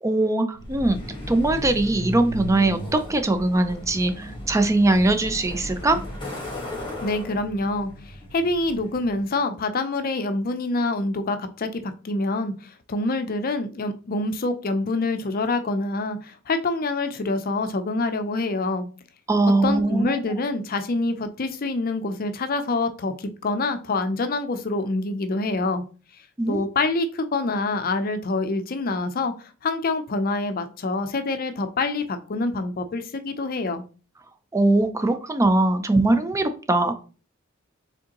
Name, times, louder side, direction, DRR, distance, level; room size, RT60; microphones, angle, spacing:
voice 1, 0.0-1.0 1.3-6.0 19.3-20.2 26.4-26.6 34.5-36.9, right 2 dB, 15° right, 0.4 m, -21 dB
Truck, 0.5-9.3, equal, 25° left, 1.5 m, -35 dB
voice 2, 7.0-18.9 19.6-25.8 26.5-33.8, left 2 dB, 45° left, 0.5 m, -26 dB
4.9 x 3.6 x 2.9 m
head